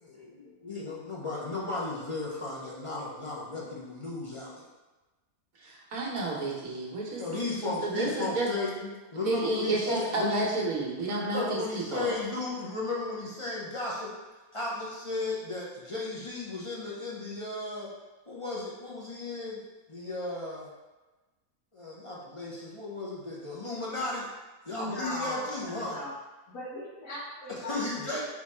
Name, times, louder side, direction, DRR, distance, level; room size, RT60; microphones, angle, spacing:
voice 1, 0.0-4.7 7.2-8.7 9.1-10.7 11.2-14.1 14.5-17.9 18.3-19.6 19.9-20.7 21.7-24.3 24.7-26.1 27.7-28.2, left 2 dB, 35° left, -5 dB, 0.5 m, -35 dB
voice 2, 5.6-8.5 8.8-8.9 9.2-12.1, right 2 dB, 70° right, -3 dB, 1.4 m, -31 dB
voice 3, 24.7-26.1 26.5-28.2, left 1 dB, 65° left, -7 dB, 1.7 m, -38 dB
3.9 x 3.0 x 4.3 m, 1.2 s
omnidirectional pair, 1.5 m